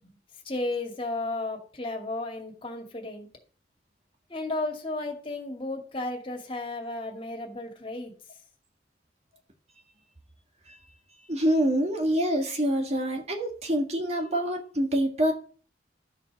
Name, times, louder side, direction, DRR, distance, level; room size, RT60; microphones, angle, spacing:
voice 1, 0.4-3.3 4.3-8.1, left 2 dB, 30° left, 2 dB, 2.3 m, -33 dB
voice 2, 11.3-15.3, right 1 dB, 40° right, 3 dB, 2.0 m, -26 dB
12.5 x 5.7 x 6.0 m, 0.41 s
head